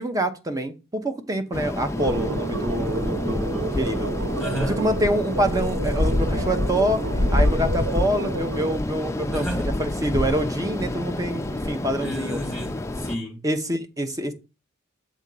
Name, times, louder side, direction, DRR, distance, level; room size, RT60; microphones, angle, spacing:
voice 1, 0.0-4.1 4.6-7.0 7.3-12.4 13.4-14.3, right 1 dB, 20° right, 0.8 m, -26 dB
sound 1, 1.5-13.2, left 1 dB, 15° left, 0.4 m, -27 dB
sound 2, 2.0-8.8, right 4 dB, 85° right, 0.5 m, -31 dB
voice 2, 4.4-4.8 9.3-9.7 12.0-13.4, equal, ahead, 2.5 m, -32 dB
7.5 x 3.6 x 5.3 m
head